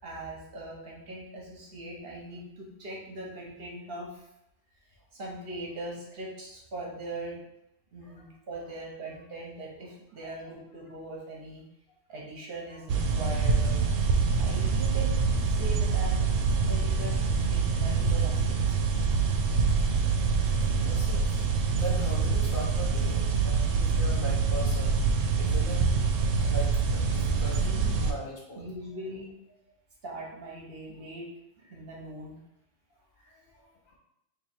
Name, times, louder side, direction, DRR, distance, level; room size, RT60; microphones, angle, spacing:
voice 1, 0.0-4.3 5.1-7.4 7.9-11.6 12.1-13.8 14.4-15.2 15.5-18.4 27.4-28.0 28.6-29.3 30.0-31.3 31.7-32.3, right 1 dB, 55° right, -2 dB, 1.1 m, -40 dB
sound 1, 12.9-28.1, right 5 dB, 85° right, 0.9 m, -25 dB
voice 2, 19.7-20.1 20.6-21.4 21.7-25.1 25.4-25.9 26.4-27.6 28.0-28.6 30.9-31.0 33.2-33.4, equal, 50° left, -3 dB, 0.8 m, -40 dB
3.0 x 2.8 x 4.3 m, 0.84 s
omnidirectional pair, 1.3 m